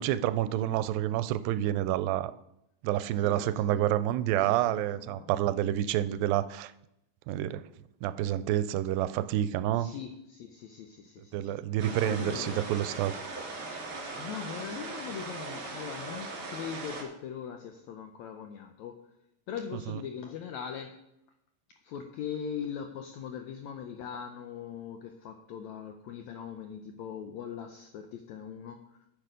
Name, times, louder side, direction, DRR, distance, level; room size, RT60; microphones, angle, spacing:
voice 1, 0.0-2.3 2.8-6.7 7.3-7.6 8.0-9.9 11.3-13.1 19.9-20.0, right 12 dB, 85° right, 13 dB, 2.3 m, -28 dB
voice 2, 3.2-4.0 4.4-5.3 9.7-11.5 12.0-12.5 14.1-19.0 19.5-21.0 21.8-29.0, left 8 dB, 90° left, 5 dB, 1.6 m, -41 dB
sound 1, 11.8-17.0, right 3 dB, 55° right, 3.1 m, -39 dB
10.5 x 6.8 x 5.1 m, 0.82 s
omnidirectional pair, 4.0 m